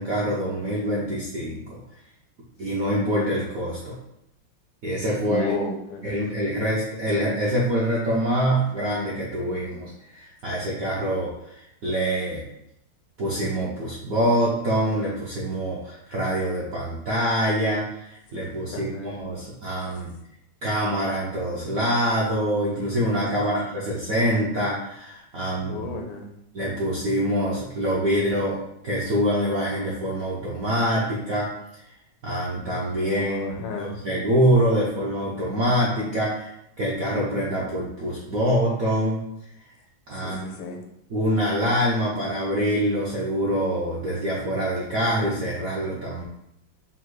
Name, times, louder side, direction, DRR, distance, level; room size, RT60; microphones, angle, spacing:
voice 1, 0.0-1.8 2.6-4.0 4.8-5.6 6.0-12.4 13.2-20.1 20.6-25.8 26.5-28.6 28.8-31.5 32.2-39.2 40.1-40.4 41.1-46.2, equal, 70° right, -6 dB, 0.8 m, -25 dB
voice 2, 5.2-6.4 18.7-19.2 23.3-23.9 25.7-26.4 33.0-34.0 40.2-40.8, left 3 dB, 80° left, 2 dB, 1.5 m, -32 dB
5.7 x 2.2 x 3.1 m, 0.79 s
omnidirectional pair, 2.4 m